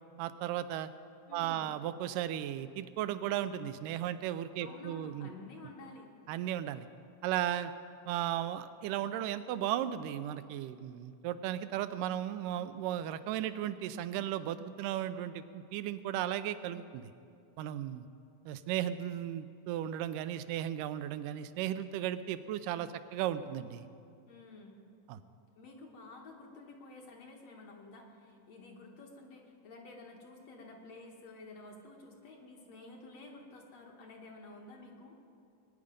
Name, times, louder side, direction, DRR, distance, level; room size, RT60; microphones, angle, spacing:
voice 1, 0.2-0.9 1.3-5.3 6.3-6.9 7.2-7.7 8.1-17.0 17.6-18.1 18.5-23.9 25.1-25.2, right 11 dB, 85° right, 13 dB, 2.2 m, -35 dB
voice 2, 1.3-1.7 4.6-6.1 24.3-24.9 25.6-35.2, left 2 dB, 60° left, 0 dB, 2.2 m, -51 dB
20.5 x 9.8 x 5.1 m, 2.5 s
omnidirectional pair, 3.8 m